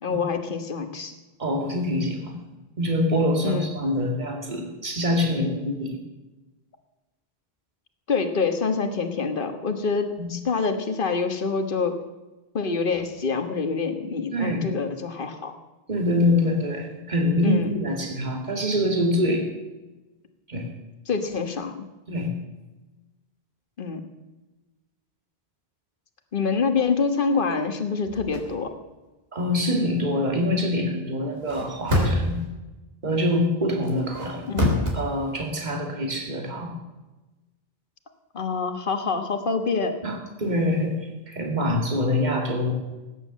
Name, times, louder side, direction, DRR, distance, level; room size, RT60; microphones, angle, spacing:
voice 1, 0.0-1.1 3.4-3.6 8.1-11.9 12.5-15.5 17.4-17.7 21.1-21.7 23.8-24.0 26.3-28.7 34.5-34.8 38.3-39.9, left 5 dB, 55° left, 7 dB, 1.6 m, -26 dB
voice 2, 1.4-2.5 2.8-6.0 10.2-10.3 14.3-14.7 15.9-19.5 20.5-20.7 22.1-22.3 29.3-32.4 33.0-34.5 34.9-36.7 40.0-41.0 41.3-42.7, left 1 dB, 45° right, 2 dB, 2.4 m, -25 dB
sound 1, 28.1-28.5 31.3-32.4 33.8-34.9, left 1 dB, 70° right, 3.7 m, -25 dB
18.0 x 9.5 x 7.4 m, 1.1 s
omnidirectional pair, 1.0 m